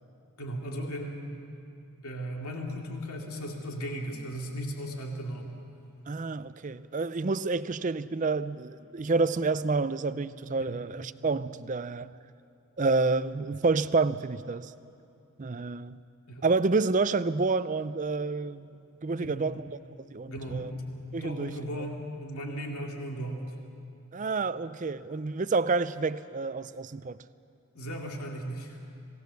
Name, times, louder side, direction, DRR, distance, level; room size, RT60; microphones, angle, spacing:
voice 1, 0.4-1.3 2.0-5.5 10.6-10.8 16.3-16.5 19.2-19.5 20.3-23.5 27.7-28.8, equal, 85° left, 2.5 m, -36 dB
voice 2, 6.1-12.1 12.8-14.7 15.4-16.0 16.4-19.8 20.1-20.7 21.1-21.5 24.1-27.2, right 3 dB, 35° right, 0.5 m, -29 dB
26.5 x 18.0 x 6.9 m
head